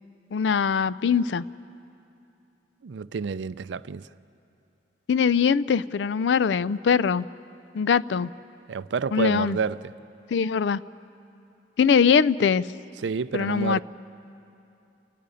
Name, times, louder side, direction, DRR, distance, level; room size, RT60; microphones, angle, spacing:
voice 1, 0.3-1.4 5.1-7.3 7.7-8.3 9.1-9.6 10.3-10.8 11.8-12.7 13.3-13.8, left 6 dB, 80° left, 0.4 m, -22 dB
voice 2, 2.8-4.1 8.7-9.8 13.0-13.8, right 5 dB, 85° right, 0.4 m, -29 dB
29.0 x 10.5 x 9.8 m
head